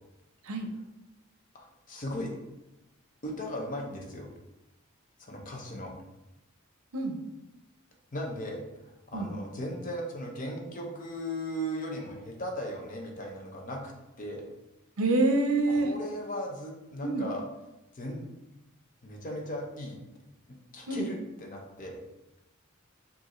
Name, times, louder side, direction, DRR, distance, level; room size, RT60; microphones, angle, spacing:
voice 1, 1.5-2.4 3.2-4.3 5.2-5.9 8.1-8.6 9.1-13.9 14.2-14.5 15.7-17.4 17.9-18.3 19.0-20.0 20.5-22.0, equal, 40° left, 0 dB, 0.7 m, -37 dB
voice 2, 15.0-15.9 17.0-17.3 20.9-21.1, right 2 dB, 80° right, 5 dB, 0.6 m, -26 dB
4.9 x 2.7 x 3.0 m, 0.95 s
head